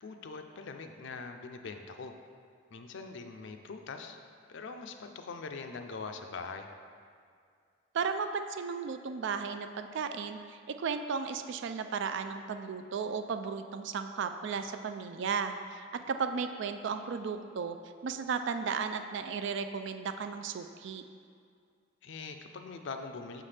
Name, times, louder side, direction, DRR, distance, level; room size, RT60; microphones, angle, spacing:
voice 1, 0.0-2.1 2.7-4.2 4.5-6.7 22.0-23.4, left 4 dB, 60° left, 6 dB, 0.4 m, -42 dB
voice 2, 7.9-17.8 18.0-21.0, right 5 dB, 60° right, 8 dB, 0.3 m, -35 dB
6.2 x 5.6 x 3.3 m, 2.2 s
head